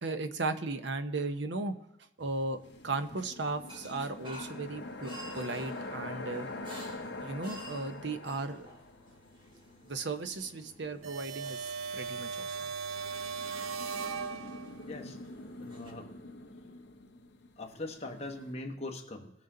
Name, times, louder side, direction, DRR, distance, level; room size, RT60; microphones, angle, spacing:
voice 1, 0.0-1.7 2.2-6.5 7.2-8.7 9.8-12.6, right 3 dB, 60° right, 9 dB, 0.8 m, -36 dB
sound 1, 2.2-15.9, right 1 dB, 25° right, 1.8 m, -53 dB
sound 2, 2.6-12.0 12.8-18.5, left 2 dB, 60° left, 0.8 m, -45 dB
sound 3, 11.0-14.9, right 5 dB, 90° right, 0.5 m, -38 dB
voice 2, 14.8-15.2 15.6-16.1 17.6-19.3, left 2 dB, 30° left, 2 dB, 1.2 m, -41 dB
19.0 x 6.6 x 3.9 m, 0.93 s
head